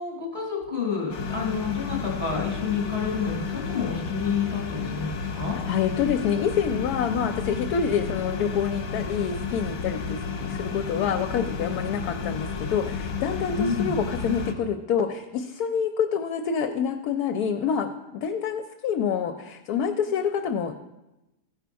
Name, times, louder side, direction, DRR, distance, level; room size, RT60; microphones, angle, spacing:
voice 1, 0.0-5.6 13.6-13.9, left 5 dB, 5° right, -5 dB, 3.5 m, -29 dB
sound 1, 1.1-14.5, left 6 dB, 50° left, 1.1 m, -32 dB
voice 2, 5.5-20.7, left 7 dB, 75° left, 7 dB, 1.1 m, -27 dB
14.5 x 5.1 x 4.6 m, 0.99 s
omnidirectional pair, 1.7 m